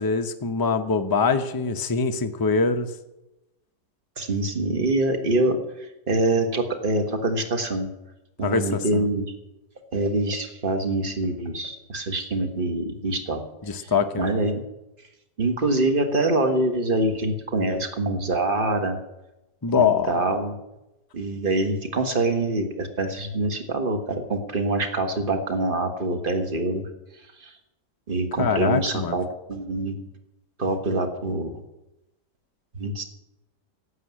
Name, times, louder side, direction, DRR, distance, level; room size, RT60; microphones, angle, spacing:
voice 1, 0.0-2.9 8.4-9.0 13.6-14.3 19.6-20.2 28.4-29.2, left 5 dB, 25° left, 6 dB, 0.4 m, -23 dB
voice 2, 4.2-5.6 6.1-7.9 8.4-9.2 9.9-13.4 13.8-13.9 14.2-14.6 15.4-19.0 19.7-20.5 21.1-26.8 27.4-27.5 28.1-29.2 29.5-29.9 30.6-31.5 32.7-33.0, right 2 dB, 30° right, 6 dB, 1.5 m, -25 dB
11.5 x 8.2 x 9.5 m, 0.94 s
omnidirectional pair, 1.8 m